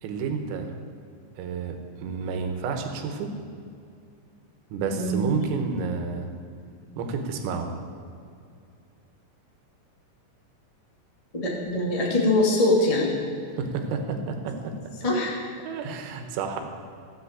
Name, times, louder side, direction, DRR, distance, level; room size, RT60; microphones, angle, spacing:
voice 1, 0.0-0.7 1.4-3.3 4.7-6.3 7.0-7.7 13.6-14.8 15.6-16.6, right 5 dB, 90° right, 5 dB, 4.0 m, -30 dB
voice 2, 11.3-13.2 15.0-15.3, left 2 dB, 30° left, -3 dB, 0.6 m, -23 dB
15.5 x 9.6 x 8.2 m, 2.4 s
omnidirectional pair, 5.8 m